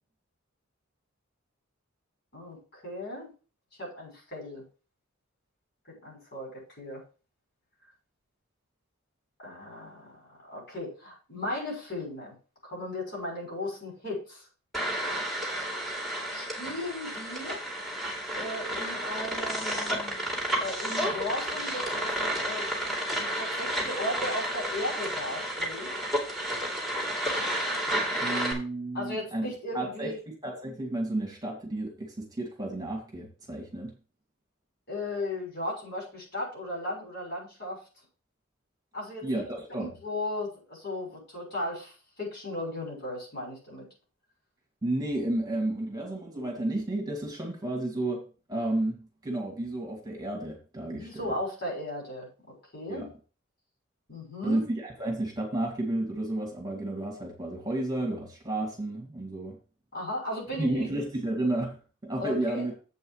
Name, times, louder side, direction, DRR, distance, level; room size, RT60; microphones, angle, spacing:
voice 1, 2.3-3.3 3.8-4.6 5.9-7.0 9.4-12.3 12.6-14.4 16.3-17.6 18.3-20.2 20.6-22.0 22.3-22.7 23.1-26.0 28.9-30.2 34.9-37.8 38.9-39.4 39.8-43.9 50.9-53.1 54.1-54.6 59.9-60.9 62.2-62.7, left 1 dB, 50° left, -2 dB, 6.3 m, -36 dB
sound 1, 14.7-28.5, right 1 dB, ahead, 2.7 m, -31 dB
voice 2, 28.2-29.5 29.7-30.1 30.4-33.9 39.2-39.9 44.8-51.3 52.9-53.1 54.4-59.6 60.6-62.7, right 1 dB, 20° right, 0 dB, 2.3 m, -32 dB
7.9 x 5.5 x 6.4 m, 0.36 s
head